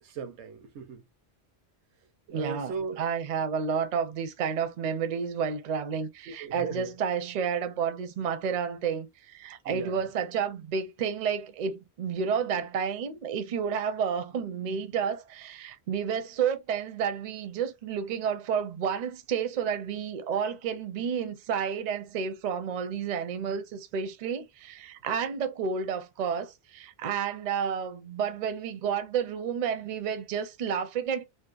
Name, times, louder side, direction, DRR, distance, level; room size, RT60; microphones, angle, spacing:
voice 1, 0.0-1.0 2.3-3.0 6.3-6.9 9.7-10.0, right 5 dB, 85° right, 0.9 m, -37 dB
voice 2, 2.3-31.3, right 7 dB, 55° right, 0.5 m, -31 dB
2.7 x 2.1 x 2.3 m
omnidirectional pair, 1.1 m